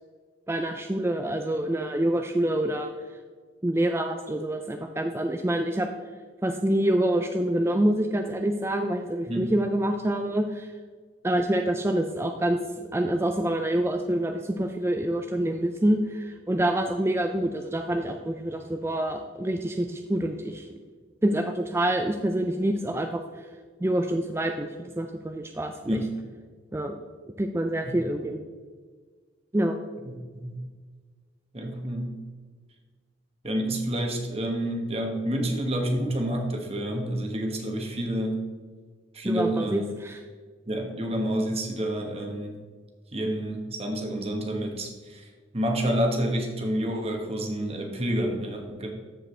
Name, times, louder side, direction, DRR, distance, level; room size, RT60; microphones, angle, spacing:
voice 1, 0.5-2.9 3.6-5.9 6.4-10.7 11.2-20.8 21.2-23.5 23.8-24.7 25.0-26.0 26.7-27.0 27.4-28.4 29.5-29.8 39.3-40.2, right 1 dB, 15° right, 5 dB, 0.4 m, -26 dB
voice 2, 30.0-30.6 31.5-32.1 33.4-38.5 39.1-39.8 40.7-42.6 43.1-45.3 45.5-48.9, right 1 dB, 30° right, 2 dB, 1.3 m, -29 dB
13.5 x 5.1 x 3.3 m, 1.5 s
head